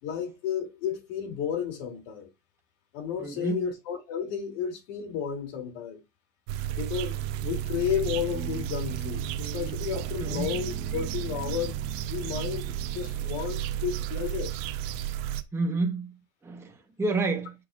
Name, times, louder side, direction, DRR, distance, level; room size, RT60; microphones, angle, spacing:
voice 1, 0.0-2.3 2.9-6.0 6.7-11.8 12.1-14.5, left 8 dB, 60° left, 3.0 m, -32 dB
voice 2, 3.2-3.7 10.2-10.5 15.5-16.1 16.4-17.5, right 3 dB, 5° right, 1.0 m, -29 dB
sound 1, 6.5-15.4, right 11 dB, 50° right, 1.0 m, -33 dB
Guitar, 8.3-15.0, right 6 dB, 25° right, 1.7 m, -46 dB
7.7 x 5.8 x 2.5 m
hypercardioid pair, 115°, 43 cm